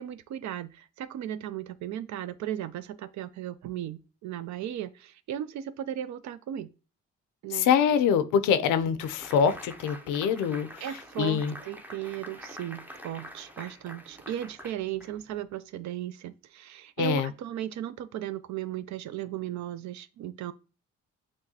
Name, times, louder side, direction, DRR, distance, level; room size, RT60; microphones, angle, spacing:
voice 1, 0.0-6.7 7.4-7.7 10.8-20.5, right 11 dB, 70° right, 0.5 m, -36 dB
voice 2, 7.5-10.8 11.2-11.5 17.0-17.3, left 7 dB, 85° left, 0.5 m, -24 dB
sound 1, 9.0-15.5, equal, 5° right, 0.5 m, -46 dB
6.1 x 2.2 x 2.8 m
cardioid pair, 90°, 30 cm